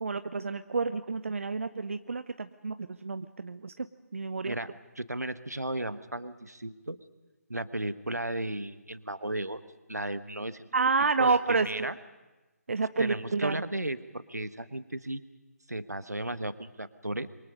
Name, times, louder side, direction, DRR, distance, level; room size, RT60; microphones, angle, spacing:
voice 1, 0.0-3.9 4.1-4.5 10.7-11.9 12.7-13.6, right 4 dB, 50° right, 12 dB, 0.7 m, -29 dB
voice 2, 5.0-7.0 7.5-9.6 9.9-10.7 11.2-11.9 13.0-15.2 15.7-17.3, right 1 dB, 80° right, 12 dB, 1.3 m, -35 dB
27.0 x 24.0 x 5.4 m, 1.1 s
figure-of-eight pair, 150°, 9 cm